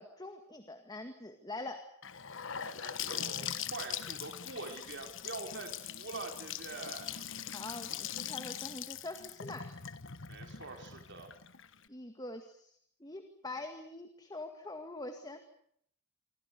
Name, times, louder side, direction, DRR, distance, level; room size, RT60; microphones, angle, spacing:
voice 1, 0.0-1.9 7.5-9.7 11.9-15.4, left 2 dB, 20° left, 7 dB, 2.0 m, -44 dB
Gurgling / Sink (filling or washing) / Bathtub (filling or washing), 2.0-11.9, left 9 dB, 60° left, 1.4 m, -41 dB
voice 2, 2.6-7.1 10.3-11.3, right 3 dB, 55° right, 4 dB, 4.8 m, -44 dB
27.5 x 25.0 x 6.8 m, 0.68 s
head